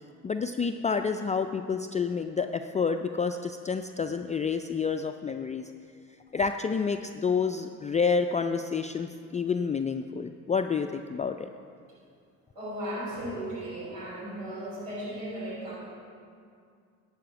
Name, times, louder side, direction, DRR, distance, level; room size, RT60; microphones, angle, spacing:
voice 1, 0.2-5.6 6.3-11.5, left 5 dB, 20° left, 6 dB, 0.4 m, -29 dB
voice 2, 12.5-15.8, right 1 dB, 85° right, -5 dB, 3.1 m, -36 dB
11.5 x 5.0 x 7.8 m, 2.3 s
hypercardioid pair, 60°, 37 cm